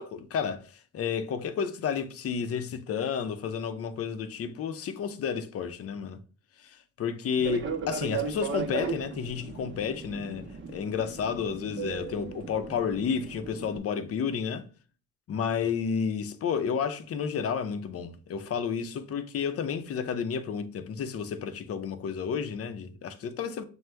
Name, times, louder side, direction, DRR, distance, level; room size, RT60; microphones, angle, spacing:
voice 1, 0.0-6.2 6.6-14.6 15.3-23.7, left 6 dB, 50° left, 0.6 m, -31 dB
Fixed-wing aircraft airplane, 7.3-13.8, right 5 dB, 40° right, 0.7 m, -36 dB
6.0 x 2.1 x 3.3 m
cardioid pair, 90°, 30 cm